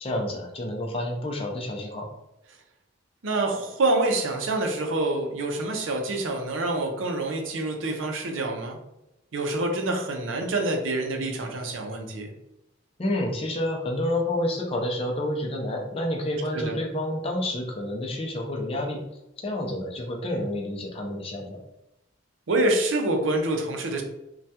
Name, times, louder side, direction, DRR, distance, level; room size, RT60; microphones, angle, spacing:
voice 1, 0.0-2.1 13.0-19.0 19.4-21.6, left 1 dB, 30° left, 1 dB, 0.5 m, -29 dB
voice 2, 3.2-8.8 9.3-12.3 16.5-16.8 22.5-24.0, right 2 dB, 70° right, 3 dB, 0.5 m, -26 dB
3.3 x 2.3 x 2.7 m, 0.90 s
head